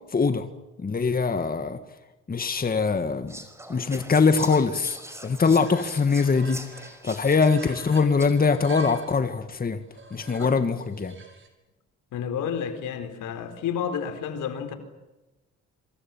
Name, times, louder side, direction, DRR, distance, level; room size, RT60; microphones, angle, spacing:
voice 1, 0.1-0.5 0.8-1.8 2.3-3.3 3.7-5.0 5.2-6.6 7.0-9.8 10.1-11.1, left 4 dB, 30° left, 1.9 m, -22 dB
Whispering, 3.3-8.6, right 1 dB, 10° right, 5.2 m, -43 dB
sound 1, 4.9-5.0 5.3-7.0 7.4-9.2 9.8-11.5, right 4 dB, 40° right, 6.7 m, -45 dB
voice 2, 10.3-10.6 12.1-14.7, left 7 dB, 85° left, 4.3 m, -31 dB
27.5 x 25.0 x 7.4 m
cardioid pair, 90°, 30 cm